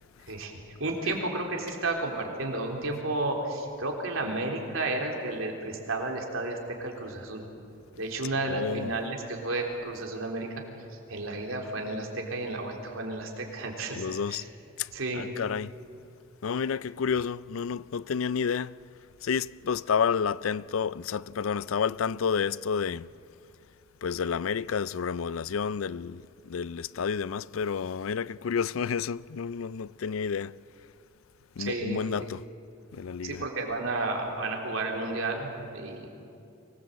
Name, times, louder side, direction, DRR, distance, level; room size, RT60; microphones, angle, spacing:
voice 1, 0.8-7.4 8.0-10.5 11.1-14.5 14.9-15.2 31.6-32.3 33.2-36.1, right 2 dB, 80° right, 3.8 m, -32 dB
voice 2, 8.5-8.9 14.0-14.4 14.8-15.7 16.4-18.7 19.2-23.1 24.0-30.5 31.6-32.4 32.9-33.4, left 6 dB, 80° left, 0.4 m, -30 dB
24.5 x 19.5 x 8.2 m
head